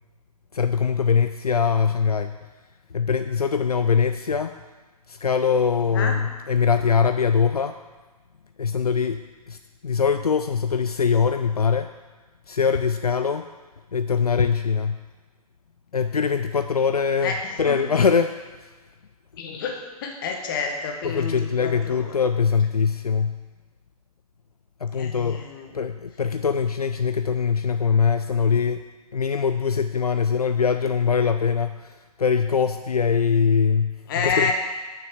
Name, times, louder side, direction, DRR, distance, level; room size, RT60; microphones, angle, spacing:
voice 1, 0.5-2.3 2.9-4.6 5.1-7.8 8.6-9.2 9.5-9.6 9.8-11.9 12.5-13.5 13.9-15.0 15.9-17.3 17.6-18.4 21.0-23.4 24.8-25.4 25.7-28.8 29.1-34.0 34.2-34.5, left 6 dB, 75° left, 9 dB, 0.5 m, -22 dB
voice 2, 17.2-17.8 19.4-22.1 24.9-25.8 34.1-34.5, left 5 dB, 35° left, 3 dB, 1.4 m, -29 dB
6.8 x 6.4 x 7.0 m, 1.3 s
figure-of-eight pair, 130°, 20 cm